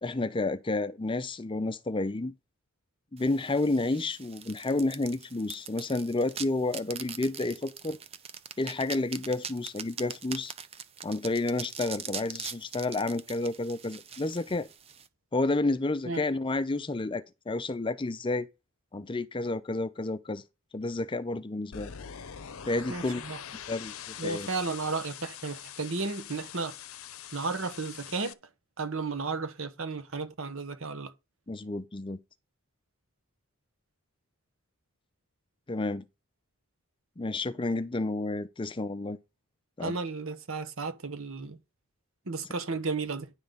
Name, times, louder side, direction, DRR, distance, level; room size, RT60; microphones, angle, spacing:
voice 1, 0.0-2.3 3.1-8.0 8.6-10.5 11.0-14.7 15.3-18.5 18.9-20.4 20.7-21.9 22.7-23.2 23.7-24.5 31.5-32.2 35.7-36.0 37.2-39.2 39.8-40.0, left 2 dB, 25° left, 0.5 m, -30 dB
sound 1, 3.2-15.1, right 7 dB, 25° right, 0.6 m, -43 dB
sound 2, 21.7-28.3, left 9 dB, 70° left, 0.7 m, -43 dB
voice 2, 22.9-23.4 24.2-26.8 27.3-28.4 28.8-31.1 39.8-41.6 42.3-43.3, right 4 dB, 65° right, 1.1 m, -33 dB
10.5 x 3.9 x 6.9 m
head